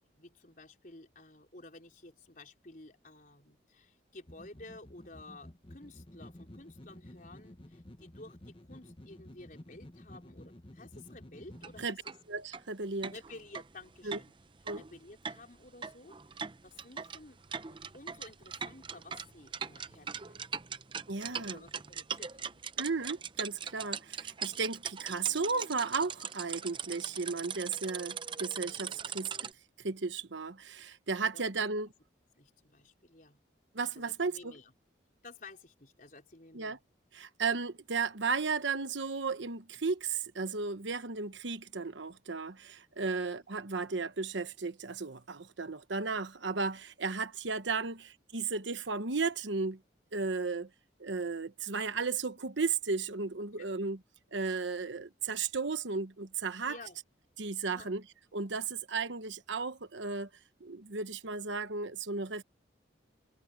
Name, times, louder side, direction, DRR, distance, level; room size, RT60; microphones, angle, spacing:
voice 1, 0.2-12.1 13.1-14.3 14.7-16.4 16.6-17.4 17.7-20.8 21.4-22.6 31.3-31.4 32.3-33.4 34.0-34.7 35.2-36.8 43.0-43.2 53.6-53.7 56.7-57.0 57.7-57.9, left 2 dB, 45° left, 4.5 m, -53 dB
sound 1, 4.3-11.9, left 1 dB, 30° left, 1.3 m, -52 dB
sound 2, 11.5-11.7 12.1-12.2 12.5-12.6 13.0-29.5, right 7 dB, 25° right, 0.6 m, -40 dB
voice 2, 12.3-13.1 14.0-14.2 14.7-14.8 21.1-21.6 22.8-29.4 29.8-31.9 33.7-34.5 36.5-36.8 37.1-49.8 50.1-50.7 51.0-54.0 54.3-56.8 57.4-58.0 58.3-60.3 60.6-62.4, right 4 dB, 80° right, 1.1 m, -34 dB
head